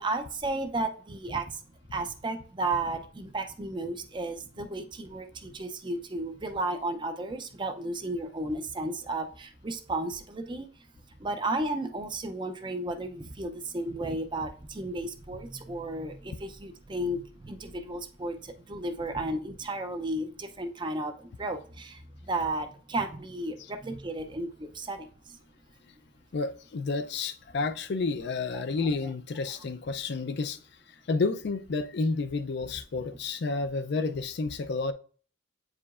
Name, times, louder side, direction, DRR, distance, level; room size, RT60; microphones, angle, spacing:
voice 1, 0.0-1.6 1.9-10.7 11.2-25.4 28.5-28.6, right 2 dB, 25° right, 0.5 m, -33 dB
voice 2, 26.3-30.6 31.1-34.9, left 3 dB, 55° left, 0.4 m, -30 dB
8.0 x 4.8 x 2.4 m
head